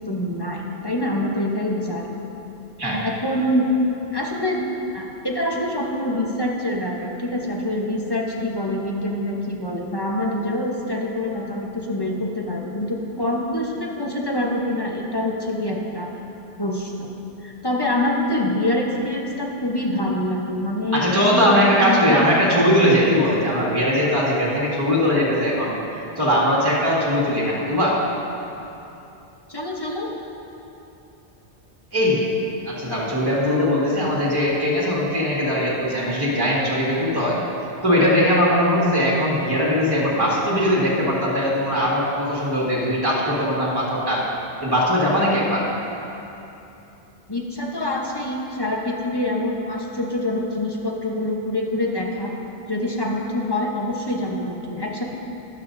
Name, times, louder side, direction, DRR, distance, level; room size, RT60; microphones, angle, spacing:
voice 1, 0.1-2.2 3.0-3.7 4.1-16.1 16.6-17.1 17.4-22.2 29.5-30.1 47.3-52.3 52.7-55.0, left 1 dB, 25° left, -2 dB, 1.0 m, -25 dB
voice 2, 20.9-28.0 31.9-32.2 32.7-37.4 37.8-44.3 44.6-45.7, equal, 20° right, -6 dB, 2.0 m, -20 dB
13.0 x 11.0 x 2.7 m, 2.9 s
omnidirectional pair, 1.1 m